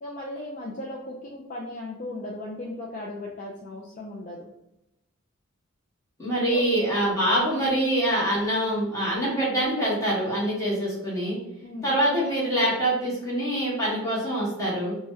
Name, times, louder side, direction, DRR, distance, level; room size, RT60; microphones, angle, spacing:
voice 1, 0.0-4.4 6.5-6.7 11.6-11.9, left 1 dB, 40° left, -2 dB, 0.4 m, -36 dB
voice 2, 6.2-11.4 11.8-14.9, right 1 dB, 15° left, -7 dB, 1.3 m, -25 dB
2.9 x 2.3 x 3.1 m, 0.87 s
head